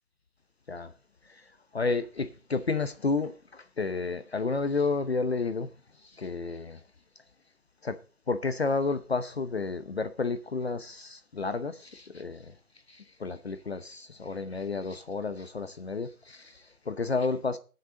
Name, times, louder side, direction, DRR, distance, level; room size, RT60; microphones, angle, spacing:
voice 1, 1.2-5.7 6.0-6.8 7.8-8.0 8.3-12.5 12.9-17.6, left 4 dB, 45° left, 0.8 m, -31 dB
17.0 x 6.7 x 3.8 m
figure-of-eight pair, 165°, 45 cm